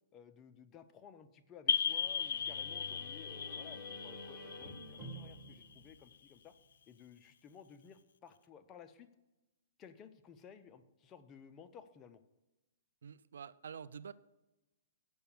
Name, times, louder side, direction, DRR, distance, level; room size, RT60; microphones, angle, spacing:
voice 1, 0.1-6.5 6.9-9.1 9.8-12.2, left 7 dB, 20° left, 9 dB, 0.5 m, -56 dB
sound 1, 1.7-6.1, left 7 dB, 75° left, 0.3 m, -37 dB
sound 2, 1.9-6.7, left 1 dB, 5° right, 1.2 m, -51 dB
voice 2, 13.0-14.1, right 7 dB, 80° right, 16 dB, 0.4 m, -47 dB
7.0 x 5.7 x 7.0 m, 1.0 s
hypercardioid pair, 150°, 0 cm